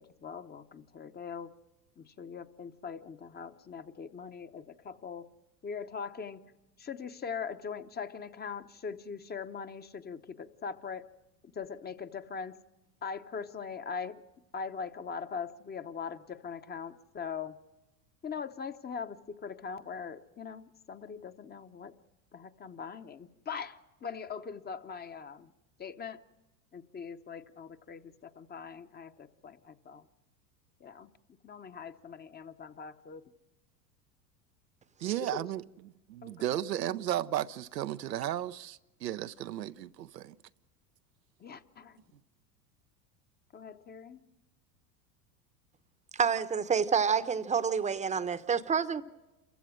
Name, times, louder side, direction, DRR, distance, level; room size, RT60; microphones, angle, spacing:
voice 1, 0.0-1.5 2.0-5.3 5.6-6.4 6.8-11.1 11.4-12.6 13.0-14.2 14.5-17.6 18.2-21.9 22.3-25.5 25.8-26.2 26.7-30.1 30.8-31.1 31.4-33.2 35.2-35.4 36.2-36.6 41.4-42.0 43.5-44.2, left 6 dB, 20° left, 0.8 m, -41 dB
voice 2, 35.0-40.3, right 12 dB, 90° right, 0.6 m, -34 dB
voice 3, 46.1-49.0, right 6 dB, 15° right, 0.8 m, -28 dB
28.0 x 15.5 x 6.3 m
hypercardioid pair, 85°, 48 cm